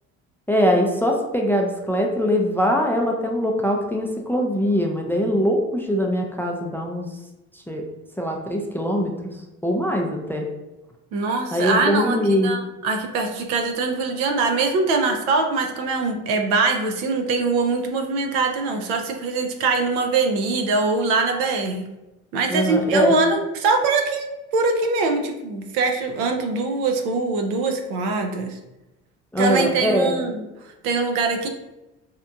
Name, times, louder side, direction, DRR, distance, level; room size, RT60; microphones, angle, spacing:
voice 1, 0.5-7.1 7.5-7.8 8.2-9.3 9.6-10.5 11.5-12.5 22.5-23.2 29.3-30.2, equal, 5° left, 1 dB, 0.3 m, -22 dB
voice 2, 11.1-12.2 12.4-21.9 22.3-24.3 24.5-28.6 29.4-30.4 30.8-31.5, right 3 dB, 80° right, 4 dB, 0.5 m, -22 dB
2.8 x 2.4 x 2.3 m, 1.0 s
hypercardioid pair, 60°, 36 cm